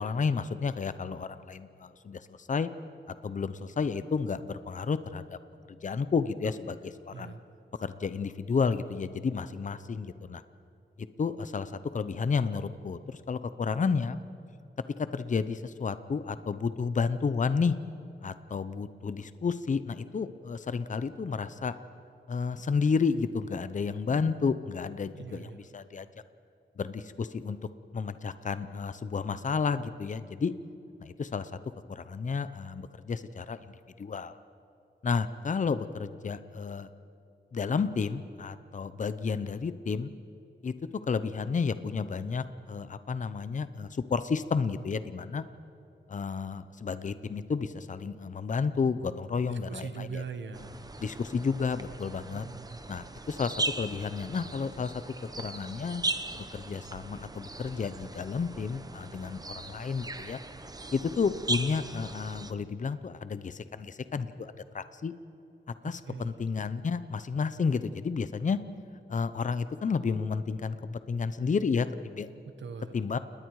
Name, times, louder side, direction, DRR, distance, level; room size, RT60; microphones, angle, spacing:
voice 1, 0.0-2.7 3.2-5.4 5.8-7.3 7.8-10.4 11.0-14.2 15.0-17.8 18.2-21.7 22.3-26.1 26.8-27.6 27.9-30.5 31.0-31.5 31.9-33.6 34.0-34.4 35.0-36.9 37.5-40.1 40.6-40.7 41.1-45.4 46.1-50.2 51.0-52.5 52.9-54.9 55.4-56.0 56.4-60.4 60.9-65.1 65.8-68.6 69.1-72.3 72.9-73.2, left 5 dB, 40° left, 13 dB, 0.7 m, -31 dB
voice 2, 25.2-25.6 49.7-50.7 52.3-52.8 65.8-66.3 72.6-73.0, right 5 dB, 70° right, 8 dB, 1.3 m, -41 dB
sound 1, 50.5-62.5, right 2 dB, 20° right, 0.8 m, -38 dB
29.5 x 19.5 x 4.8 m, 2.5 s
wide cardioid pair, 150°, 20 cm